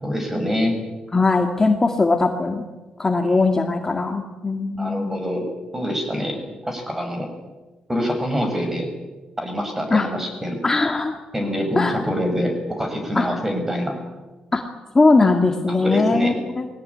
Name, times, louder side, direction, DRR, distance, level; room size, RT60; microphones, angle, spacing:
voice 1, 0.0-0.8 4.8-5.5 5.7-6.4 6.6-7.3 7.9-8.9 9.4-10.6 11.3-13.9 15.8-16.4, equal, 15° right, 4 dB, 7.0 m, -25 dB
voice 2, 1.1-2.6 3.0-5.2 9.9-10.1 10.6-11.2 11.8-12.0 13.1-13.3 14.5-14.6 14.9-16.7, left 3 dB, 25° left, 4 dB, 1.9 m, -19 dB
21.0 x 17.5 x 9.8 m, 1.2 s
cardioid pair, 95°, 2 cm